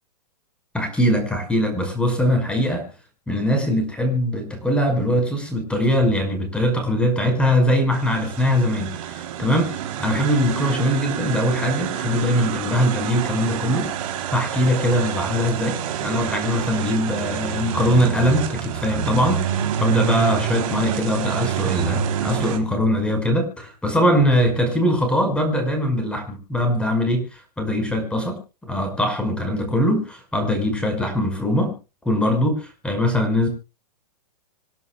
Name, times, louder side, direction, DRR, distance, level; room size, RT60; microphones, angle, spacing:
voice 1, 0.7-2.9 3.3-13.9 14.3-31.7 32.0-33.5, equal, 5° left, 5 dB, 5.7 m, -22 dB
sound 1, 7.9-22.6, right 10 dB, 55° right, 3.8 m, -27 dB
27.0 x 11.0 x 2.4 m, 0.31 s
hypercardioid pair, 125°, 21 cm